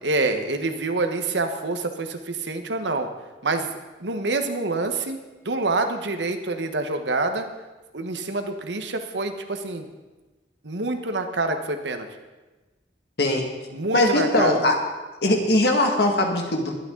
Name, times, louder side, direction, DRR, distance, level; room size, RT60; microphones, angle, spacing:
voice 1, 0.0-3.1 3.4-3.7 4.0-5.2 5.4-7.5 7.9-9.9 10.6-12.1 13.7-14.6, right 3 dB, 80° right, 6 dB, 1.2 m, -26 dB
voice 2, 13.2-13.5 13.9-14.8 15.2-16.7, left 1 dB, 65° left, 2 dB, 2.0 m, -20 dB
21.5 x 9.0 x 3.9 m, 1.2 s
head